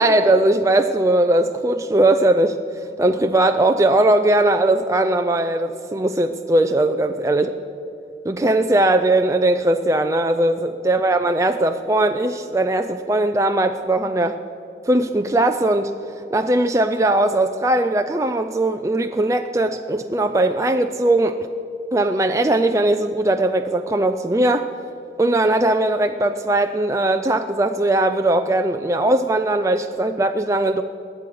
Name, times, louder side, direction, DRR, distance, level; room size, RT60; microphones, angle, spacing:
voice 1, 0.0-2.6 3.0-7.5 8.3-14.4 14.9-16.0 16.3-21.5 21.9-24.7 25.2-30.8, right 1 dB, 15° right, 6 dB, 0.4 m, -19 dB
21.0 x 7.6 x 6.4 m, 2.8 s
head